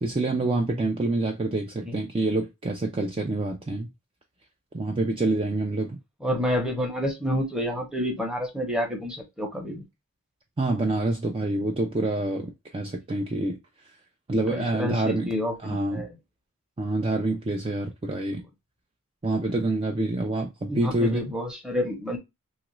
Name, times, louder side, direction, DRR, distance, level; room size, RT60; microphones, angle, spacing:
voice 1, 0.0-3.9 4.7-6.0 10.6-13.6 14.3-15.3 15.6-16.1 16.8-18.4 19.2-21.2, right 2 dB, 25° right, 0.4 m, -27 dB
voice 2, 6.2-9.8 14.5-16.1 20.7-22.2, equal, 5° right, 0.8 m, -29 dB
2.9 x 2.5 x 3.0 m
head